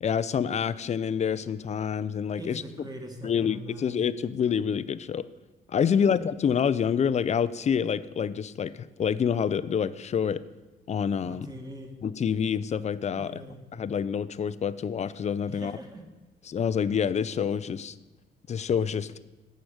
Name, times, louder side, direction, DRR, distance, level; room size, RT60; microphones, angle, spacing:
voice 1, 0.0-2.6 3.2-5.3 5.7-10.4 10.9-11.5 12.0-13.4 13.7-15.7 16.5-17.9 18.5-19.2, left 7 dB, 35° left, 16 dB, 0.4 m, -27 dB
voice 2, 2.4-4.0 5.8-6.1 11.2-11.9 13.1-13.6 15.5-16.0, right 1 dB, 20° right, 3 dB, 1.6 m, -42 dB
9.2 x 4.9 x 6.4 m, 1.1 s
cardioid pair, 90°, 20 cm